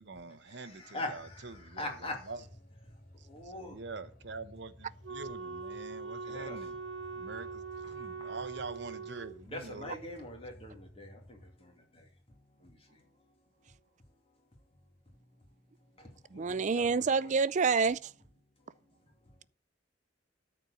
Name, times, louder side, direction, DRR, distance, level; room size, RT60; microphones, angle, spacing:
voice 1, 0.0-1.9 2.3-2.4 3.2-6.8 7.1-9.9, right 3 dB, 65° right, 1.0 m, -45 dB
voice 2, 0.6-2.3 3.3-3.7 6.3-6.6 9.5-11.4 16.3-17.3, left 1 dB, 30° left, 2.7 m, -42 dB
sound 1, 1.2-11.5, left 1 dB, 45° left, 1.9 m, -56 dB
Wind instrument woodwind instrument, 5.0-9.3, right 4 dB, 85° right, 1.2 m, -42 dB
voice 3, 16.3-18.1, right 5 dB, 40° right, 0.4 m, -28 dB
13.5 x 4.6 x 8.2 m
head